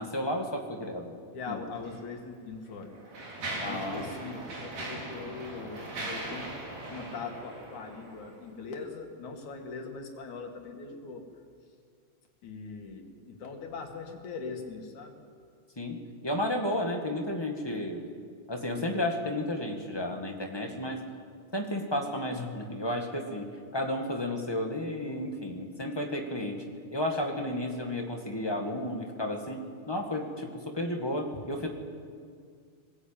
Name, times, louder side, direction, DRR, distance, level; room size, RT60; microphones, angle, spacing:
voice 1, 0.0-1.2 1.5-1.6 3.6-4.0 15.7-18.0 18.5-21.0 21.5-23.5 23.7-31.7, left 1 dB, 10° left, 2 dB, 1.2 m, -32 dB
voice 2, 1.3-3.2 3.5-6.6 6.9-11.3 12.4-15.2 27.1-27.2, left 4 dB, 70° left, 3 dB, 3.6 m, -41 dB
Mechanisms, 1.8-1.9 2.6-8.4, right 2 dB, 60° right, 5.5 m, -39 dB
21.0 x 18.5 x 9.0 m, 2.1 s
omnidirectional pair, 3.6 m